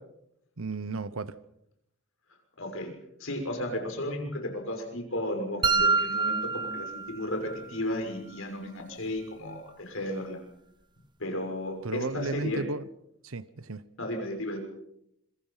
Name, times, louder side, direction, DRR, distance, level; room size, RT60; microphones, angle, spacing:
voice 1, 0.6-1.4 11.8-12.8 13.2-13.8, right 3 dB, 80° right, 15 dB, 0.9 m, -34 dB
voice 2, 2.6-2.9 3.2-10.4 11.2-12.6 14.0-14.6, left 1 dB, 75° left, 4 dB, 6.4 m, -34 dB
sound 1, 5.6-7.6, right 4 dB, 20° right, 1.1 m, -27 dB
26.5 x 23.5 x 5.7 m, 0.76 s
head